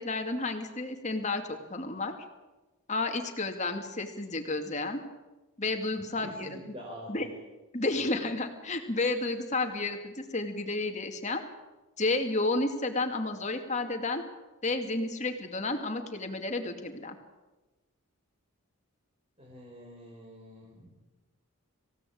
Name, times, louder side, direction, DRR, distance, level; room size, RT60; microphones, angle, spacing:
voice 1, 0.0-2.1 2.9-5.0 5.6-6.6 7.1-7.3 7.7-11.4 12.0-14.2 14.6-17.2, left 2 dB, 30° left, 4 dB, 2.5 m, -31 dB
voice 2, 6.0-7.4 19.4-21.0, equal, 25° right, -1 dB, 4.9 m, -46 dB
27.0 x 16.5 x 8.7 m, 1.2 s
head